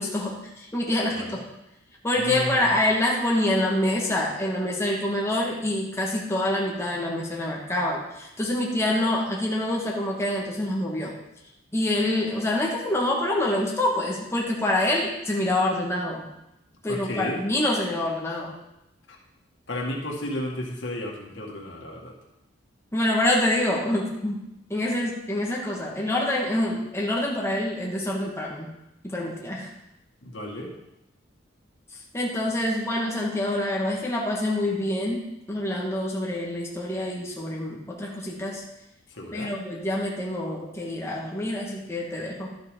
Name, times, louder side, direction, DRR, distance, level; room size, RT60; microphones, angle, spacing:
voice 1, 0.0-1.4 2.0-11.2 11.7-16.3 16.8-18.6 22.9-24.4 24.7-28.7 29.0-29.7 32.1-38.6 39.3-42.5, left 1 dB, 15° left, -3 dB, 1.6 m, -26 dB
voice 2, 2.2-2.8 16.9-17.4 19.1-19.2 19.7-22.1 30.2-30.7 39.1-39.5, left 1 dB, 80° left, -1 dB, 1.9 m, -33 dB
12.0 x 7.8 x 3.8 m, 0.87 s
head